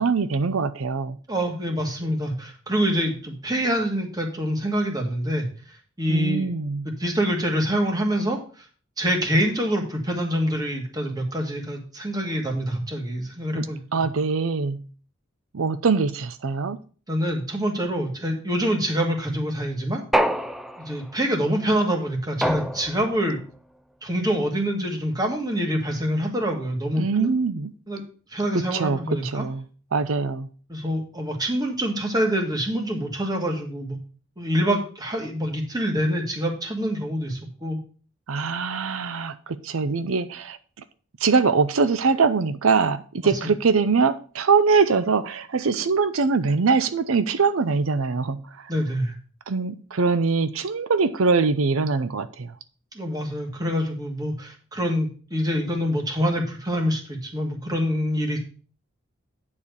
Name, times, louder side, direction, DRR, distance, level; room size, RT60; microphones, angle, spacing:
voice 1, 0.0-1.2 6.1-6.9 13.6-13.7 13.9-14.8 15.5-16.8 27.0-27.7 28.5-29.6 29.9-30.5 38.3-40.6 41.2-48.7 49.5-52.5, right 4 dB, 85° right, 11 dB, 0.6 m, -23 dB
voice 2, 1.3-5.5 6.0-6.5 6.9-8.7 9.0-14.0 17.1-20.0 20.8-23.4 24.0-27.3 27.9-28.0 28.3-29.5 30.7-34.0 34.4-37.8 43.4-43.5 48.7-49.2 52.9-58.4, equal, 20° right, 2 dB, 1.8 m, -26 dB
sound 1, 20.1-21.1 22.4-23.2, equal, ahead, 0.4 m, -25 dB
9.6 x 4.4 x 6.8 m, 0.40 s
head